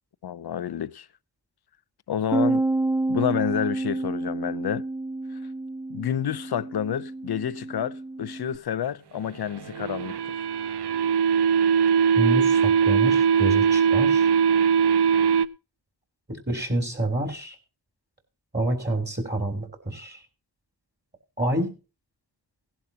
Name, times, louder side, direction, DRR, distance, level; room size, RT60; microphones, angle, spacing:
voice 1, 0.2-1.1 2.1-2.6 3.1-4.8 5.9-10.2, left 9 dB, 60° left, 0.7 m, -29 dB
Bass guitar, 2.3-8.6, right 2 dB, 5° right, 0.5 m, -29 dB
sound 1, 9.5-15.5, right 7 dB, 65° right, 0.7 m, -21 dB
voice 2, 12.2-14.3 16.5-17.6 18.5-20.2 21.4-21.7, right 1 dB, 25° right, 3.3 m, -27 dB
17.5 x 11.0 x 2.8 m
cardioid pair, 65°, 43 cm